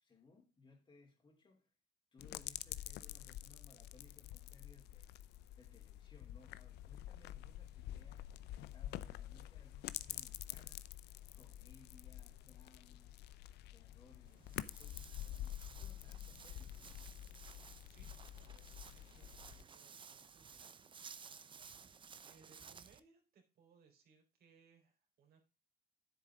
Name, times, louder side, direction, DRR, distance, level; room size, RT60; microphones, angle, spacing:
voice 1, 0.0-1.7 2.1-5.1 5.6-10.9 11.3-13.2 13.7-17.0, left 3 dB, 30° left, 3.3 m, -65 dB
sound 1, 2.2-19.6, left 13 dB, 80° left, 0.7 m, -48 dB
Walk footsteps, 14.2-23.0, right 6 dB, 30° right, 0.8 m, -56 dB
voice 2, 17.9-21.3 22.2-25.4, right 6 dB, 65° right, 3.9 m, -69 dB
10.0 x 8.0 x 3.6 m
cardioid pair, 110°, 17 cm